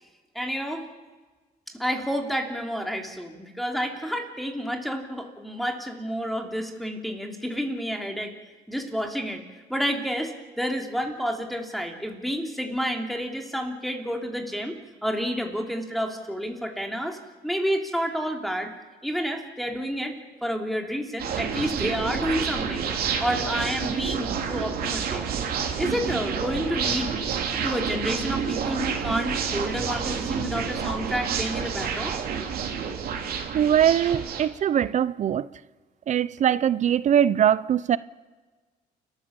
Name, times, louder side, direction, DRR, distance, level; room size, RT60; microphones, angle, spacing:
voice 1, 0.3-0.8 1.7-8.3 8.7-9.4 9.7-14.8 15.0-17.2 17.4-18.7 19.0-22.9 23.2-25.2 25.8-27.1 27.6-32.2, equal, ahead, 3.0 m, -29 dB
sound 1, 21.2-34.5, right 7 dB, 60° right, 3.0 m, -29 dB
voice 2, 33.5-35.5 36.1-38.0, right 9 dB, 45° right, 0.5 m, -21 dB
29.5 x 14.0 x 7.0 m
cardioid pair, 110°, 17 cm